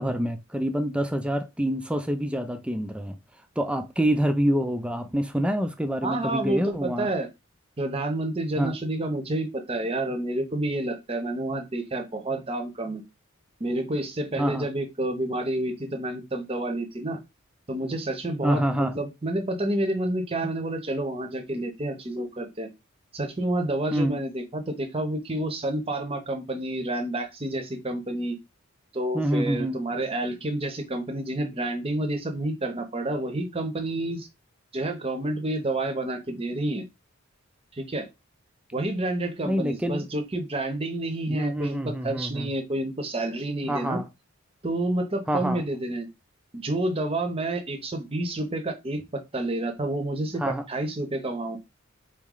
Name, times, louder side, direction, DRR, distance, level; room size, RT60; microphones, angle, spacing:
voice 1, 0.0-3.2 3.6-7.1 8.6-8.8 14.4-14.7 18.4-19.0 23.9-24.2 29.1-29.8 39.5-40.1 41.3-42.5 43.7-44.0 45.3-45.6 50.4-50.6, equal, 5° right, 0.4 m, -26 dB
voice 2, 6.0-7.3 7.8-13.0 13.6-17.2 17.7-22.7 23.1-28.4 28.9-34.3 34.7-36.8 37.7-38.1 38.7-44.0 44.6-46.1 46.5-51.6, right 1 dB, 25° right, 0.8 m, -29 dB
4.1 x 3.1 x 3.8 m
head